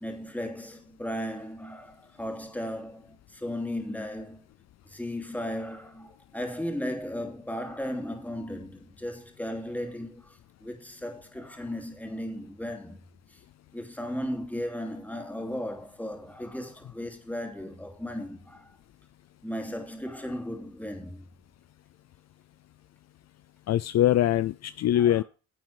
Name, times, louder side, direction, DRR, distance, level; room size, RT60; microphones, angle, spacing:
voice 1, 0.0-4.4 4.9-10.4 10.6-13.0 13.7-18.7 19.4-21.2 25.0-25.2, left 1 dB, 5° left, 2.9 m, -36 dB
voice 2, 23.7-25.2, left 12 dB, 60° left, 0.5 m, -23 dB
10.5 x 7.6 x 4.4 m
cardioid pair, 90°, 30 cm